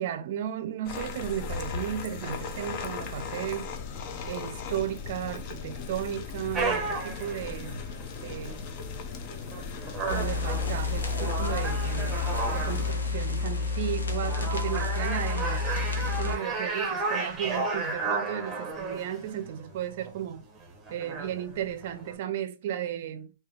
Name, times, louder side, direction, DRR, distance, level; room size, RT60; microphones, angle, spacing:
voice 1, 0.0-3.7 4.2-7.8 8.2-8.6 10.1-12.2 12.5-15.7 16.1-20.5 20.9-23.3, right 10 dB, 55° right, 0.4 m, -34 dB
sound 1, 0.8-12.9, left 5 dB, 40° left, 0.5 m, -38 dB
sound 2, 6.5-22.1, right 3 dB, 15° right, 0.8 m, -34 dB
sound 3, 10.1-16.4, left 4 dB, 90° left, 0.8 m, -30 dB
3.2 x 2.7 x 2.3 m
hypercardioid pair, 135°, 0 cm